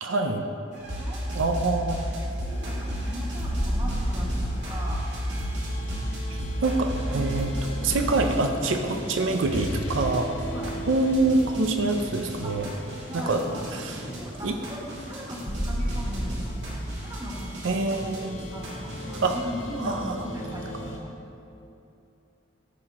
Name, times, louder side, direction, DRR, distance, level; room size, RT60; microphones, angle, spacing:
voice 1, 0.0-0.5 1.3-2.0 6.3-7.5 7.8-10.4 10.9-12.7 13.1-13.4 13.7-13.9 14.4-14.6 17.6-18.4 19.2-19.4 19.8-20.2, right 3 dB, 90° right, 5 dB, 0.6 m, -25 dB
sound 1, 0.7-19.4, equal, 60° right, 2.1 m, -34 dB
voice 2, 0.9-1.4 2.1-5.0 9.0-9.2 10.4-10.8 12.4-12.6 13.1-13.7 14.1-17.8 18.5-21.1, equal, 20° right, -3 dB, 1.3 m, -39 dB
sound 2, 2.5-21.0, equal, 75° left, 1.6 m, -35 dB
14.5 x 5.8 x 3.0 m, 2.8 s
head